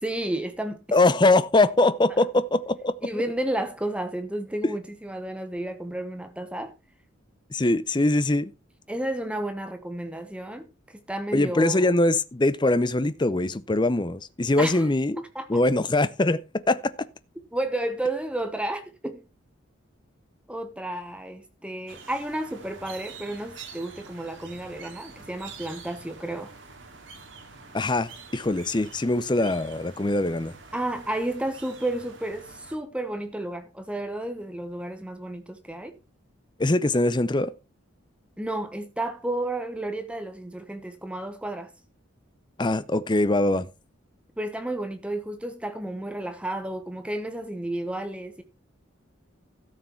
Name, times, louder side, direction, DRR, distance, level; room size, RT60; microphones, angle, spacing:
voice 1, 0.0-0.8 2.1-2.2 3.0-6.7 8.9-11.8 14.6-14.9 15.3-15.5 17.5-19.2 20.5-26.5 30.7-36.0 38.4-41.7 44.4-48.4, right 1 dB, 5° right, 1.0 m, -32 dB
voice 2, 0.9-2.9 7.5-8.5 11.3-16.9 27.7-30.6 36.6-37.5 42.6-43.7, left 2 dB, 20° left, 0.6 m, -22 dB
sound 1, 21.9-32.8, right 5 dB, 70° right, 2.4 m, -46 dB
13.0 x 6.5 x 4.5 m
head